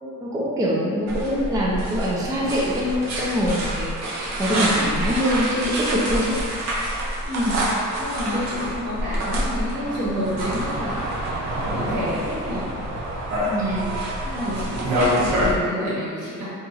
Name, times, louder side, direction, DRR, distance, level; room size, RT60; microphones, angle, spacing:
voice 1, 0.0-6.3 13.6-13.8, equal, 10° right, -5 dB, 0.3 m, -24 dB
sound 1, 1.1-15.5, right 1 dB, 55° right, 0.6 m, -26 dB
voice 2, 7.2-11.0 11.7-12.7 13.4-13.9 14.2-16.5, equal, 85° right, -9 dB, 1.4 m, -28 dB
2.8 x 2.3 x 4.0 m, 2.2 s
wide cardioid pair, 175°, 32 cm